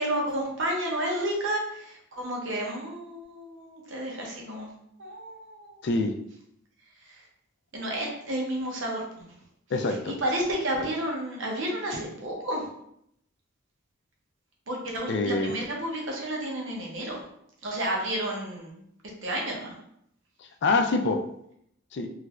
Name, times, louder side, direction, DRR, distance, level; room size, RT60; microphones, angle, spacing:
voice 1, 0.0-4.7 5.0-5.8 7.1-7.2 7.7-9.3 10.1-12.7 14.7-17.2 17.6-18.8 19.2-19.7, right 1 dB, 60° right, -1 dB, 0.8 m, -31 dB
voice 2, 5.8-6.1 9.7-10.2 15.1-15.6 20.6-21.2 21.9-22.1, left 3 dB, 55° left, 5 dB, 0.4 m, -25 dB
3.1 x 3.0 x 2.4 m, 0.72 s
head